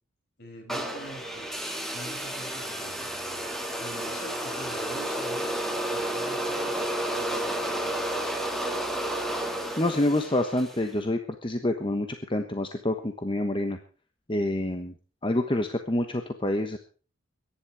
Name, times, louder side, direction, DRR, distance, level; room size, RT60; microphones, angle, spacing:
voice 1, 0.4-3.1 3.7-6.8 7.2-7.5, right 1 dB, 55° left, 2 dB, 6.8 m, -45 dB
sound 1, 0.7-10.9, right 1 dB, ahead, 2.2 m, -31 dB
voice 2, 9.8-13.8 14.3-14.9 15.2-16.8, left 1 dB, 25° left, 6 dB, 1.2 m, -27 dB
22.5 x 10.5 x 4.8 m, 0.39 s
head